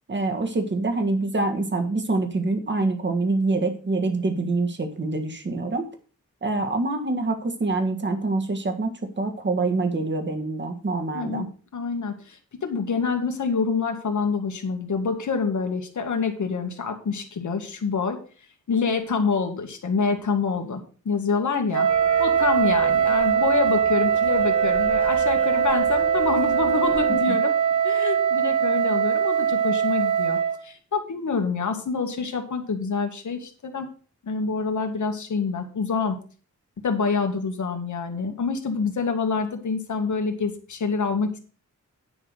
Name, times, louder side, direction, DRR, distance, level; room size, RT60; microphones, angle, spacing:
voice 1, 0.1-5.9 6.4-11.5 27.3-27.4, right 3 dB, 35° right, 6 dB, 1.6 m, -25 dB
voice 2, 11.1-11.5 11.7-18.2 18.7-21.9 22.2-27.5 27.8-33.9 34.2-36.2 36.8-41.4, left 5 dB, 70° left, 5 dB, 1.9 m, -26 dB
Wind instrument woodwind instrument, 21.7-30.6, right 8 dB, 75° right, 1.1 m, -21 dB
sound 1, 21.9-27.2, left 3 dB, 5° left, 1.2 m, -37 dB
10.0 x 6.0 x 6.5 m, 0.39 s
wide cardioid pair, 180°, 30 cm